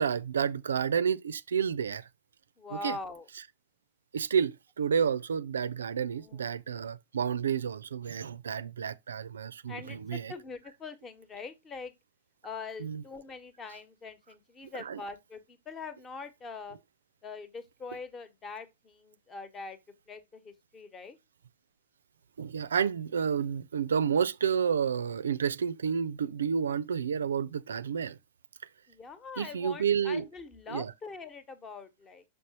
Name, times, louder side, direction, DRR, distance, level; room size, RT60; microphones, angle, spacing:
voice 1, 0.0-2.1 2.8-3.0 4.1-10.3 12.8-13.0 14.7-15.0 22.4-28.2 29.4-30.2 30.7-30.9, right 7 dB, 70° right, 0.4 m, -30 dB
voice 2, 2.6-3.3 6.1-6.6 9.7-11.9 12.4-16.8 17.2-19.8 20.1-21.2 28.9-32.2, left 4 dB, 25° left, 1.1 m, -43 dB
6.6 x 5.2 x 2.9 m
figure-of-eight pair, 90°, 0 cm